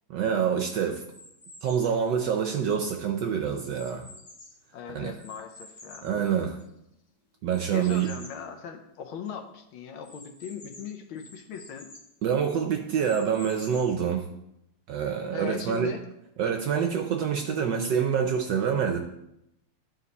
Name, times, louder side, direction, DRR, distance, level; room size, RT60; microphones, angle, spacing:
voice 1, 0.1-1.0 1.6-4.1 4.9-5.1 6.0-6.6 7.4-8.1 12.2-14.2 14.9-15.9 16.4-19.0, right 7 dB, 70° right, 4 dB, 1.1 m, -26 dB
sound 1, 1.1-2.0 2.7-4.7 5.2-6.8 7.5-8.5 8.9-9.0 9.2-9.3 10.0-12.1 12.7-14.0, left 2 dB, 50° left, 1.9 m, -49 dB
voice 2, 4.7-6.1 7.7-11.9 15.3-16.0, left 7 dB, 75° left, 5 dB, 1.5 m, -39 dB
11.5 x 4.2 x 4.0 m, 0.82 s
omnidirectional pair, 2.4 m